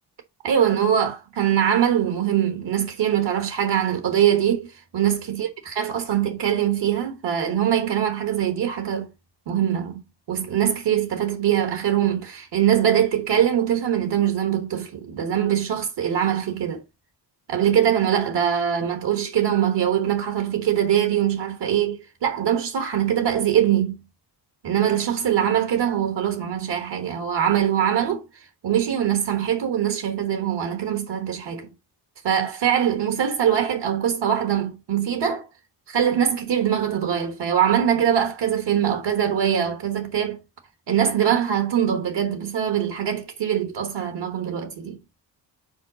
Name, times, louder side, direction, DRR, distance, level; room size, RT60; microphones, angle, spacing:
voice 1, 0.4-4.7 4.9-9.1 9.5-10.0 10.3-16.8 17.5-24.0 24.6-28.2 28.6-31.7 32.2-35.5 35.9-40.4 40.9-45.0, right 9 dB, 70° right, 1.3 m, -22 dB
5.3 x 4.8 x 5.0 m
cardioid pair, 125°, 43 cm